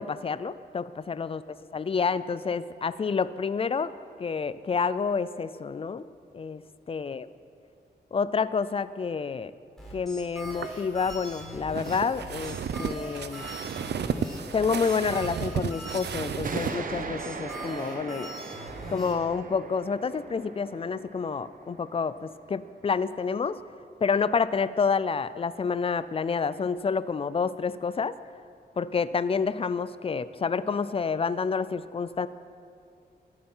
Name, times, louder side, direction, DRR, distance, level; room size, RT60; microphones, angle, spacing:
voice 1, 0.0-1.4 1.7-3.9 4.2-6.1 6.3-6.6 6.9-7.3 8.1-9.5 9.9-13.5 14.5-18.3 18.9-23.6 24.0-28.1 28.8-32.3, left 5 dB, 35° left, 15 dB, 0.4 m, -28 dB
sound 1, 9.8-19.1, equal, ahead, 4.3 m, -41 dB
sound 2, 10.4-16.8, right 7 dB, 75° right, 0.6 m, -33 dB
sound 3, 16.4-23.6, right 4 dB, 50° right, 1.0 m, -40 dB
22.5 x 8.8 x 5.6 m, 2.4 s
wide cardioid pair, 150°, 18 cm